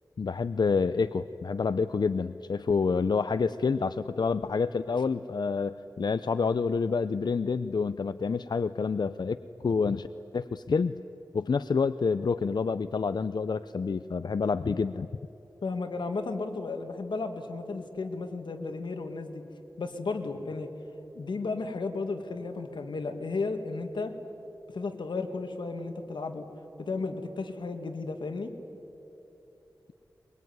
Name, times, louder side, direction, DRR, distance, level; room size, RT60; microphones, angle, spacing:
voice 1, 0.2-9.4 9.6-10.1 10.3-10.9 11.3-15.1, left 5 dB, 65° left, 13 dB, 0.5 m, -28 dB
voice 2, 15.6-19.4 19.8-20.7 21.1-24.1 24.7-26.4 26.8-28.5, left 3 dB, 90° left, 7 dB, 2.0 m, -34 dB
23.0 x 22.5 x 9.5 m, 3.0 s
wide cardioid pair, 75°, 8 cm